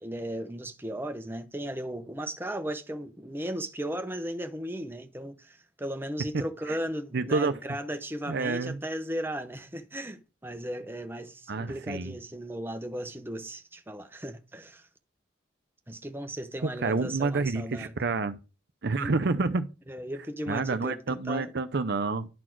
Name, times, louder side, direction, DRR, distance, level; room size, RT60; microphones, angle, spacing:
voice 1, 0.0-14.9 15.9-17.9 19.0-19.1 19.9-21.5, right 1 dB, 10° right, 0.7 m, -36 dB
voice 2, 7.1-7.6 8.3-8.8 11.5-12.1 16.6-18.4 18.8-19.7 20.5-22.3, right 3 dB, 55° right, 0.6 m, -28 dB
11.0 x 4.3 x 4.5 m
head